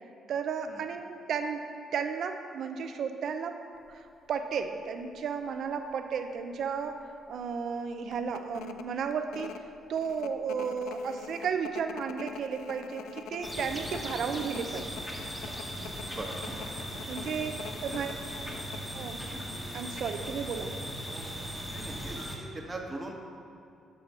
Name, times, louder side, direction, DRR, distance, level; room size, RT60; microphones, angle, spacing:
voice 1, 0.3-1.7 1.9-3.6 3.9-4.0 4.3-9.6 9.9-15.0 17.1-17.5 17.8-18.1 18.9-19.2 19.7-20.8, right 6 dB, 65° right, 7 dB, 0.6 m, -33 dB
sound 1, 3.9-4.1 4.6-4.7 5.0-5.9 6.3-6.4 6.8-7.0 7.4-7.5 8.1-18.9, left 8 dB, 85° left, 0.3 m, -45 dB
sound 2, 13.4-22.4, equal, 10° left, 1.2 m, -38 dB
voice 2, 17.7-18.0 18.5-18.7 21.7-23.1, right 2 dB, 20° right, 1 dB, 1.1 m, -42 dB
7.0 x 5.0 x 6.0 m, 2.5 s
cardioid pair, 90°, 0 cm